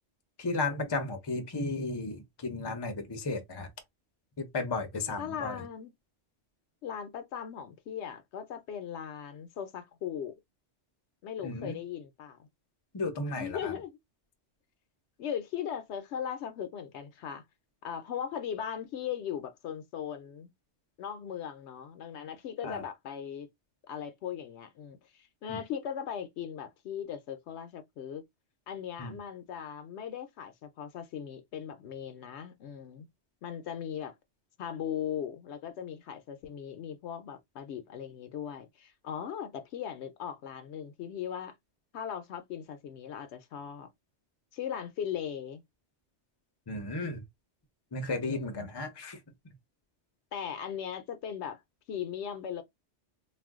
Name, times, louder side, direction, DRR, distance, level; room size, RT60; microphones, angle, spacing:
voice 1, 0.4-3.7 4.4-5.6 11.4-11.8 12.9-13.7 22.6-22.8 25.5-25.6 29.0-29.2 46.7-47.2 47.9-49.2, left 3 dB, 30° left, 0.5 m, -34 dB
voice 2, 5.2-5.9 6.8-10.4 11.2-12.5 13.3-14.0 15.2-17.4 17.8-20.5 21.0-23.5 23.9-28.2 28.7-33.1 33.4-34.1 34.6-41.5 41.9-43.9 44.5-45.6 48.2-48.7 50.3-51.6 51.9-52.6, left 8 dB, 75° left, 0.8 m, -38 dB
2.4 x 2.2 x 3.5 m
omnidirectional pair, 1.2 m